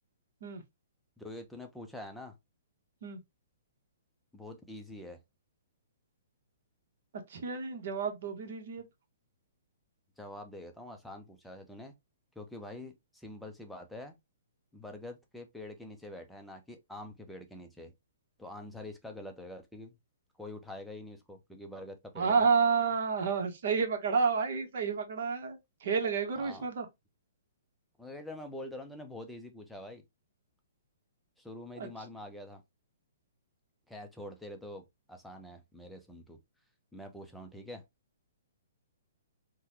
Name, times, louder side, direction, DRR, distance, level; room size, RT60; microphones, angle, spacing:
voice 1, 1.2-2.4 4.3-5.2 10.2-12.0 12.4-14.2 14.7-17.9 18.4-20.0 20.4-22.5 26.4-26.7 28.0-30.0 31.4-32.6 33.9-34.8 35.1-36.4 36.9-37.8, left 1 dB, ahead, 0.6 m, -45 dB
voice 2, 7.3-8.8 22.2-26.9 31.8-31.9, right 5 dB, 60° right, 1.1 m, -30 dB
3.6 x 2.2 x 3.0 m
hypercardioid pair, 150°, 0 cm